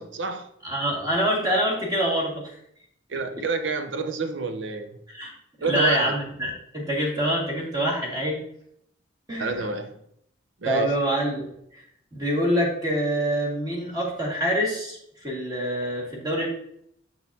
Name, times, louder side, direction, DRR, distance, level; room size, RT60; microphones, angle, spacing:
voice 1, 0.0-0.5 3.1-5.0 5.6-6.2 9.4-10.0 10.6-10.9, right 4 dB, 75° right, 0.6 m, -28 dB
voice 2, 0.6-2.6 5.1-5.3 5.7-8.4 9.3-9.6 10.7-11.5 12.1-16.5, equal, 20° right, 1.9 m, -25 dB
6.9 x 6.3 x 2.7 m
head